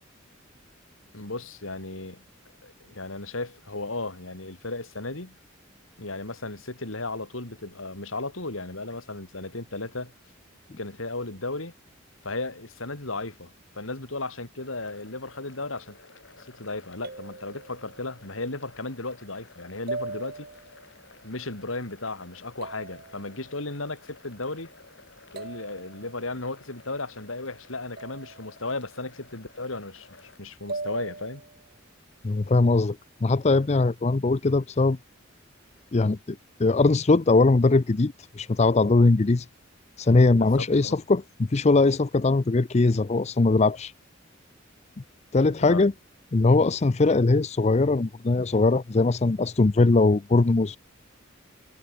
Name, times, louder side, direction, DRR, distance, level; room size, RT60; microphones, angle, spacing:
voice 1, 1.1-2.2 2.6-5.4 6.0-10.1 10.8-11.7 12.2-16.0 16.4-20.5 21.2-24.7 25.3-30.1 30.4-31.4 40.3-41.0 45.7-45.9, left 2 dB, 80° left, 3.8 m, -35 dB
sound 1, 14.6-30.4, left 3 dB, 60° left, 5.1 m, -53 dB
sound 2, 15.7-16.1 17.0-18.4 19.9-20.9 22.6-23.7 25.4-26.4 28.0-28.9 30.7-31.7, right 3 dB, 50° right, 3.0 m, -40 dB
voice 2, 32.2-33.0 33.2-35.0 35.9-39.5 40.0-43.9 45.3-45.9 46.3-50.8, left 3 dB, 30° left, 0.5 m, -21 dB
head